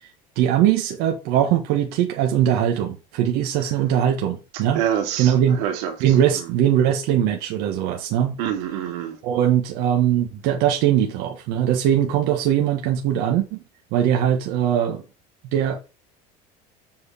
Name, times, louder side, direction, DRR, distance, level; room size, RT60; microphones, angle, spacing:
voice 1, 0.3-4.8 5.2-5.6 6.0-8.4 9.2-13.6 13.9-15.0 15.5-15.8, right 10 dB, 60° right, 1.5 m, -21 dB
voice 2, 4.5-6.5 8.4-9.2, right 9 dB, 85° right, 2.5 m, -27 dB
7.8 x 4.7 x 5.7 m
cardioid pair, 165°, 18 cm